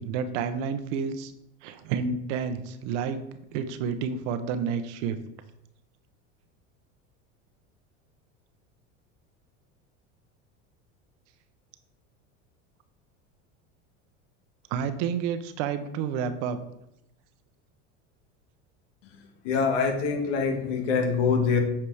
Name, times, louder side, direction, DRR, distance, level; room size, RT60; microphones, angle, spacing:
voice 1, 0.0-1.3 1.6-3.2 3.5-5.2 14.7-16.6, right 6 dB, 70° right, 10 dB, 1.0 m, -30 dB
voice 2, 19.4-21.6, left 5 dB, 75° left, 3 dB, 1.9 m, -24 dB
8.9 x 5.0 x 4.8 m, 0.82 s
supercardioid pair, 100°, 37 cm